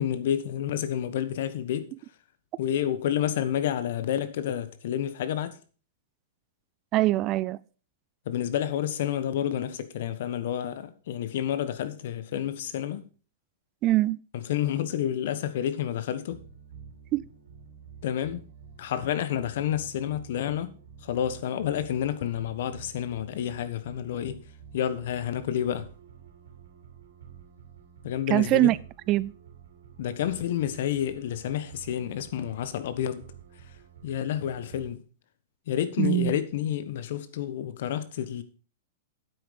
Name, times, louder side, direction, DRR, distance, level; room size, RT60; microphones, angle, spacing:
voice 1, 0.0-1.9 2.6-5.6 8.2-13.0 14.3-16.4 18.0-18.5 18.8-20.7 21.0-24.4 24.7-25.9 28.0-28.7 30.0-33.2 34.0-35.0 35.7-38.4, left 10 dB, 65° left, 1.3 m, -29 dB
voice 2, 6.9-7.6 13.8-14.2 17.1-17.3 28.3-28.8 29.1-29.3 36.0-36.4, right 16 dB, 35° right, 0.4 m, -23 dB
sound 1, 16.3-34.9, right 6 dB, 85° right, 3.3 m, -50 dB
9.4 x 8.1 x 5.1 m
hypercardioid pair, 125°, 0 cm